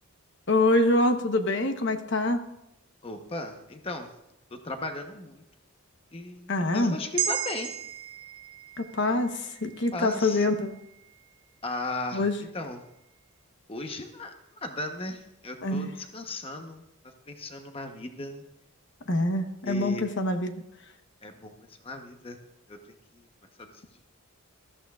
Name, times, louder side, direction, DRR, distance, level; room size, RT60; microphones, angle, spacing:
voice 1, 0.5-2.4 6.5-7.0 8.8-10.8 12.1-12.3 15.6-15.9 19.1-20.5, left 2 dB, 55° left, 6 dB, 1.0 m, -25 dB
voice 2, 3.0-4.1 4.5-5.4 6.1-7.7 9.9-10.5 11.6-12.3 12.5-12.9 13.7-14.3 14.6-16.8 17.3-18.4 19.6-20.0 21.2-21.5 21.8-22.4 22.7-22.8 23.6-23.7, left 2 dB, 25° left, 5 dB, 0.9 m, -36 dB
sound 1, 7.2-11.7 12.1-12.2, right 10 dB, 75° right, 0.8 m, -36 dB
20.0 x 13.5 x 2.4 m, 0.85 s
head